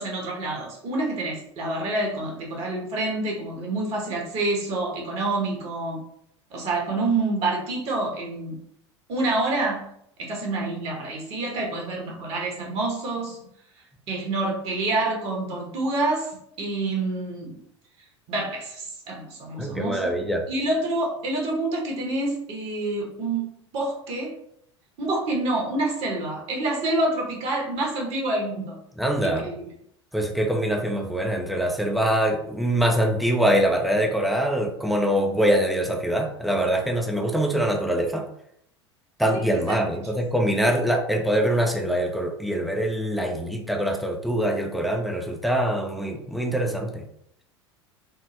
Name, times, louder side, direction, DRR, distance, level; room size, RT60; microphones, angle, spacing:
voice 1, 0.0-6.0 6.5-8.6 9.1-9.9 10.2-13.4 14.1-16.3 16.6-17.6 18.3-20.2 20.5-24.4 25.0-28.8 29.2-29.7 39.7-39.8, right 2 dB, 40° right, -1 dB, 1.1 m, -27 dB
voice 2, 19.6-20.4 29.0-29.5 30.1-38.3 39.2-47.0, right 1 dB, ahead, 2 dB, 0.6 m, -24 dB
3.6 x 2.0 x 3.1 m, 0.71 s
figure-of-eight pair, 80°, 15 cm